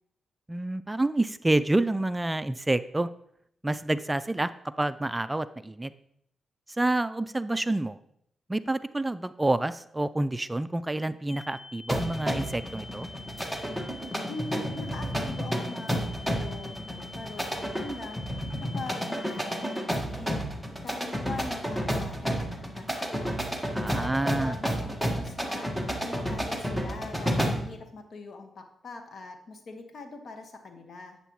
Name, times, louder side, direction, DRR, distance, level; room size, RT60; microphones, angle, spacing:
voice 1, 0.5-3.1 3.6-4.5 4.8-5.9 6.8-8.0 8.5-13.1 23.7-24.5, right 2 dB, 15° right, 14 dB, 0.4 m, -28 dB
sound 1, 11.3-19.8, left 3 dB, 30° left, 1.6 m, -47 dB
sound 2, 11.9-27.7, equal, 5° left, 1.5 m, -31 dB
voice 2, 14.3-18.3 18.6-20.4 20.8-25.7 26.0-31.2, left 3 dB, 60° left, 6 dB, 1.4 m, -42 dB
11.0 x 8.1 x 3.1 m, 0.71 s
cardioid pair, 65°, 0 cm